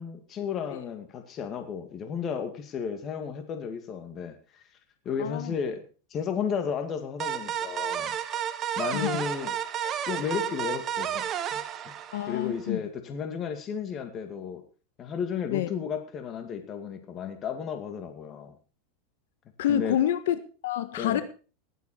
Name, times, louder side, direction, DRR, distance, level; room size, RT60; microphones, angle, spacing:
voice 1, 0.0-4.6 5.1-8.1 8.5-9.6 10.1-11.9 12.3-14.6 15.0-18.5 19.7-20.0 21.0-21.2, left 7 dB, 30° left, 2.2 m, -33 dB
voice 2, 5.2-5.5 8.9-9.1 9.8-9.9 12.1-12.8 15.5-15.7 19.6-21.2, left 11 dB, 80° left, 1.4 m, -28 dB
sound 1, 7.2-12.6, right 9 dB, 30° right, 1.2 m, -32 dB
19.5 x 8.2 x 4.4 m
supercardioid pair, 135°, 0 cm